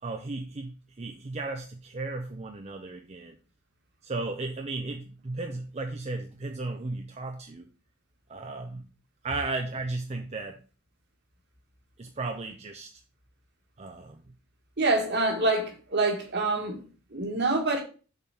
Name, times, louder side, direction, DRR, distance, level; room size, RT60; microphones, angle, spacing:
voice 1, 0.0-3.4 4.0-7.7 8.3-8.9 9.2-10.6 12.0-12.9 13.8-14.2, right 3 dB, 30° right, 0.5 m, -35 dB
voice 2, 14.8-17.8, right 2 dB, 50° right, 1.7 m, -26 dB
6.9 x 4.0 x 5.8 m
head